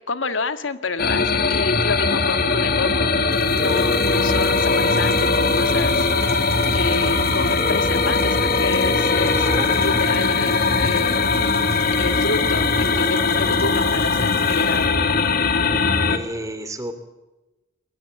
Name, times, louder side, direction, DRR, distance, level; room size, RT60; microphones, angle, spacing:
voice 1, 0.1-11.6 12.0-15.0, left 3 dB, 85° left, 10 dB, 1.8 m, -29 dB
sound 1, 1.0-16.2, left 4 dB, 50° left, 2.4 m, -20 dB
sound 2, 3.0-15.4, right 5 dB, 55° right, 7.7 m, -37 dB
sound 3, 3.6-5.6 7.6-9.6, right 1 dB, 30° left, 5.4 m, -29 dB
voice 2, 9.2-10.1 15.5-15.6 16.1-16.9, right 1 dB, 15° right, 10 dB, 2.8 m, -33 dB
23.5 x 21.0 x 8.9 m, 1.1 s
head